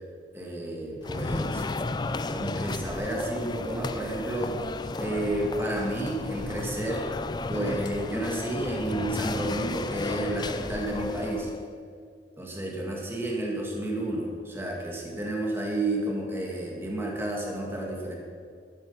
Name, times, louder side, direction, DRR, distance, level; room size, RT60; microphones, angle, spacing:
voice 1, 0.3-1.7 2.3-4.6 5.0-7.1 7.5-11.5 12.4-18.2, right 1 dB, 15° right, -2 dB, 2.0 m, -31 dB
sound 1, 1.0-11.7, left 3 dB, 20° left, 0.3 m, -33 dB
12.5 x 9.8 x 5.7 m, 2.2 s
head